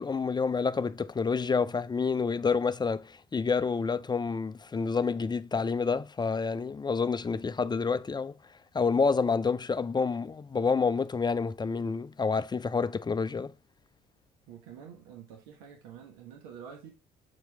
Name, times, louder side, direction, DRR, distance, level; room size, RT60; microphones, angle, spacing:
voice 1, 0.0-8.3 8.7-13.5, left 5 dB, 20° left, 0.5 m, -28 dB
voice 2, 14.5-16.9, right 8 dB, 80° right, 1.4 m, -47 dB
8.4 x 4.5 x 3.5 m
hypercardioid pair, 55°, 20 cm